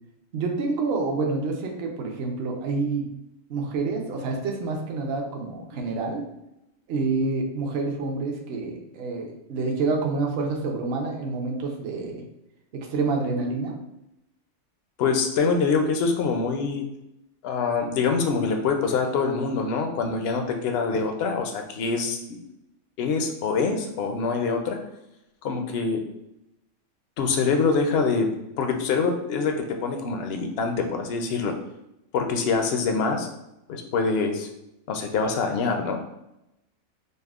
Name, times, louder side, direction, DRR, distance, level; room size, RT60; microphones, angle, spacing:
voice 1, 0.3-3.1 3.5-6.2 6.9-12.2 12.7-13.8, right 3 dB, 60° right, 1 dB, 0.7 m, -28 dB
voice 2, 15.0-16.8 17.4-22.4 23.0-24.8 25.4-26.0 27.2-28.3 28.6-31.5 32.1-33.3 33.7-34.5 34.9-36.0, left 4 dB, 65° left, 4 dB, 0.6 m, -25 dB
5.2 x 2.0 x 2.3 m, 0.88 s
omnidirectional pair, 1.4 m